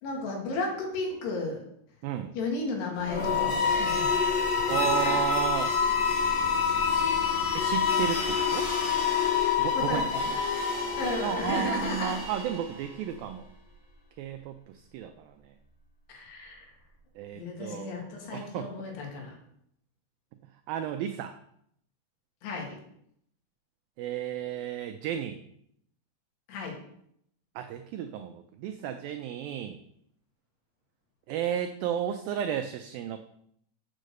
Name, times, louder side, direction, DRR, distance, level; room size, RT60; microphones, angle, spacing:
voice 1, 0.0-1.6 2.3-4.2 4.5-5.3 9.4-10.3 11.0-12.2 16.1-16.7 17.3-19.4 22.4-22.8 26.5-26.8, left 3 dB, 80° left, 0 dB, 4.0 m, -34 dB
voice 2, 2.0-2.3 4.7-5.8 7.5-8.7 9.6-10.1 11.2-13.5 14.2-14.5 14.9-15.3 17.2-18.7 20.7-21.3 24.0-25.4 27.6-29.8 31.3-33.2, right 10 dB, 90° right, 8 dB, 2.0 m, -33 dB
Metal Chaos wet, 3.0-12.9, left 5 dB, 45° left, 2.7 m, -27 dB
7.5 x 6.4 x 6.5 m, 0.72 s
omnidirectional pair, 4.8 m